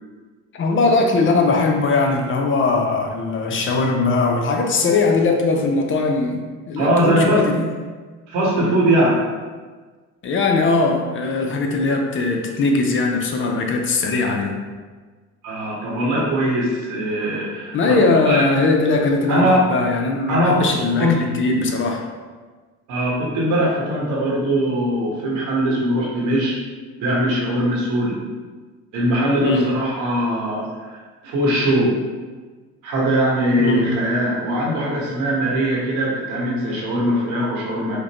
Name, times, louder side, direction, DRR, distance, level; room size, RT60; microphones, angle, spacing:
voice 1, 0.5-6.4 6.7-7.6 10.2-14.5 17.7-22.0 29.4-29.7 33.6-33.9, left 3 dB, 40° left, 2 dB, 0.5 m, -20 dB
voice 2, 6.8-7.5 8.3-9.2 15.4-18.4 19.3-19.6 20.3-20.7 21.0-21.2 22.9-26.5 27.0-28.2 28.9-30.9 31.2-31.9 32.8-38.0, equal, 80° right, -4 dB, 1.3 m, -21 dB
5.0 x 2.1 x 2.9 m, 1.4 s
cardioid pair, 105°, 31 cm